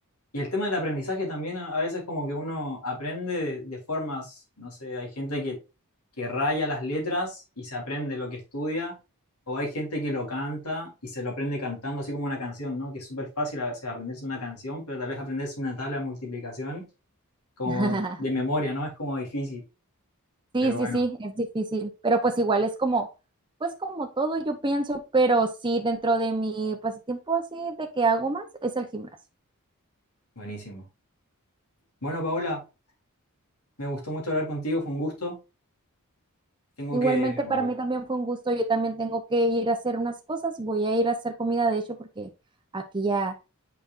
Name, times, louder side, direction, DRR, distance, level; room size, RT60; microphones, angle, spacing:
voice 1, 0.3-5.6 6.2-8.9 9.5-16.8 17.6-19.6 20.6-21.0 30.4-30.8 32.0-32.6 33.8-35.4 36.8-37.7, left 1 dB, 85° left, 3.9 m, -31 dB
voice 2, 17.7-18.2 20.5-23.1 23.6-29.1 36.9-41.8 42.2-42.3 42.7-43.3, right 2 dB, 20° right, 0.8 m, -26 dB
8.1 x 5.2 x 2.6 m
head